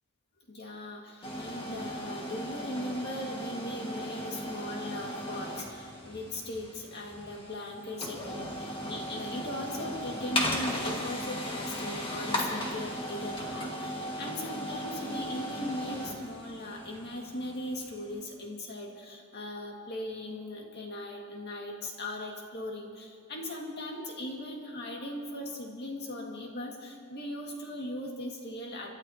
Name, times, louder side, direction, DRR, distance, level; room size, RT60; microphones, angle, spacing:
voice 1, 0.5-28.9, left 1 dB, 50° left, 0 dB, 2.0 m, -39 dB
sound 1, 1.2-18.1, equal, 25° left, 1.8 m, -37 dB
28.5 x 12.5 x 2.9 m, 2.2 s
head